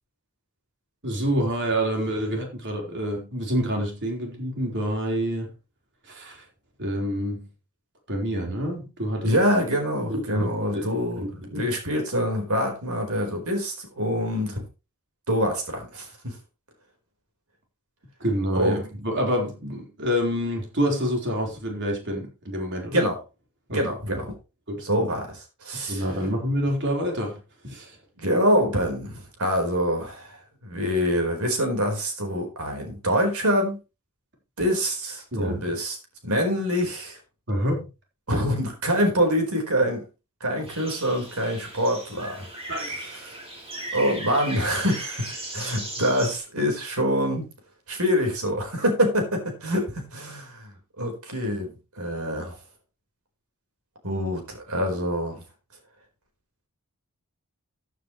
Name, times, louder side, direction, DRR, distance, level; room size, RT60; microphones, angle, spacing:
voice 1, 1.0-5.5 6.0-6.4 6.8-7.5 8.1-9.3 10.1-10.5 10.7-10.9 11.2-11.7 18.2-23.1 23.7-24.2 24.7-24.8 25.9-28.0 35.3-35.6 37.5-37.9 42.7-43.0, equal, 55° right, 4.1 m, -27 dB
voice 2, 9.2-14.6 15.3-16.4 18.5-18.8 22.9-23.2 23.7-24.2 24.8-26.0 28.2-33.8 34.6-36.0 36.2-37.2 38.3-40.0 40.4-42.5 43.2-43.4 43.9-47.4 47.9-50.7 51.0-52.6 54.0-55.4, equal, 70° right, 4.5 m, -25 dB
sound 1, 40.7-46.4, right 1 dB, 25° right, 4.0 m, -37 dB
15.0 x 9.4 x 3.2 m
head